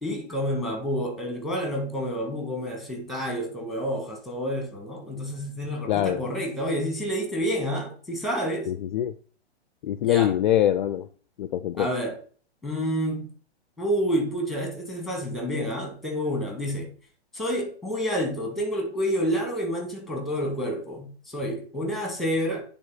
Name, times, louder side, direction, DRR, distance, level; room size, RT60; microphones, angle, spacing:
voice 1, 0.0-8.7 10.0-10.3 11.8-12.2 12.6-13.3 13.8-16.9 17.3-22.6, equal, ahead, 2.0 m, -29 dB
voice 2, 5.9-6.2 8.7-9.1 9.8-11.1 11.4-11.9, left 11 dB, 45° left, 0.4 m, -23 dB
9.3 x 3.5 x 3.9 m
hypercardioid pair, 120°, 34 cm